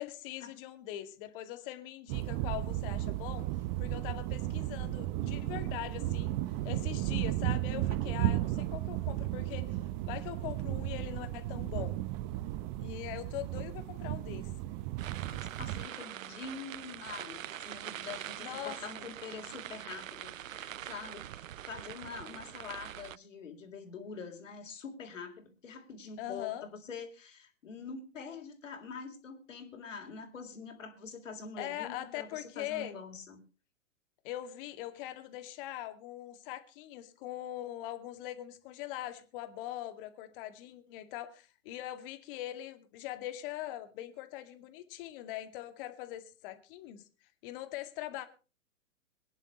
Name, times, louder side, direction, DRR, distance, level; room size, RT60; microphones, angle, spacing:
voice 1, 0.0-3.4 3.8-6.4 6.6-9.8 10.1-12.0 12.8-14.5 18.4-19.1 26.2-26.6 31.6-33.0 34.2-47.0 47.4-48.3, left 13 dB, 45° left, 9 dB, 2.3 m, -42 dB
sound 1, 2.1-15.8, right 15 dB, 35° right, 0.8 m, -34 dB
sound 2, 15.0-23.2, right 11 dB, 80° right, 0.6 m, -44 dB
voice 2, 15.3-33.4, left 5 dB, 70° left, 6 dB, 3.9 m, -45 dB
23.5 x 10.5 x 3.1 m, 0.34 s
hypercardioid pair, 115°, 39 cm